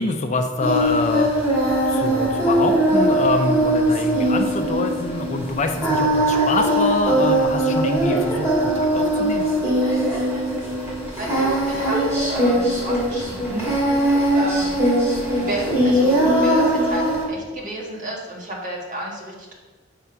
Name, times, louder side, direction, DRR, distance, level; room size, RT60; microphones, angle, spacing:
voice 1, 0.0-1.3 1.7-9.5, left 3 dB, 40° left, 5 dB, 0.5 m, -25 dB
Singing, 0.6-17.2, right 1 dB, 15° right, 2.3 m, -20 dB
voice 2, 11.2-12.0 12.3-13.9 14.3-14.8 15.4-19.5, right 1 dB, 45° right, -3 dB, 1.6 m, -31 dB
6.9 x 3.7 x 5.8 m, 1.3 s
head